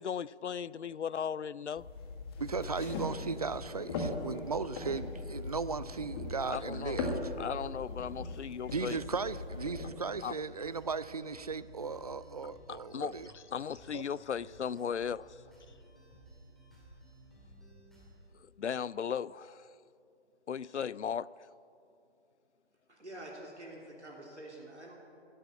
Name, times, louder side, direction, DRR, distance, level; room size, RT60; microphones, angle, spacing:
voice 1, 0.0-1.9 6.5-7.0 7.4-9.0 10.2-10.4 12.7-15.4 18.6-19.7 20.5-21.3, left 7 dB, 85° left, 0.5 m, -37 dB
sound 1, 1.8-9.9, left 2 dB, 20° left, 1.6 m, -39 dB
voice 2, 2.4-7.3 8.7-13.3 13.9-14.0, right 4 dB, 35° right, 0.4 m, -37 dB
sound 2, 5.4-18.2, equal, ahead, 2.3 m, -56 dB
voice 3, 22.9-24.9, right 1 dB, 90° right, 3.2 m, -47 dB
15.5 x 9.0 x 8.8 m
figure-of-eight pair, 140°, 34 cm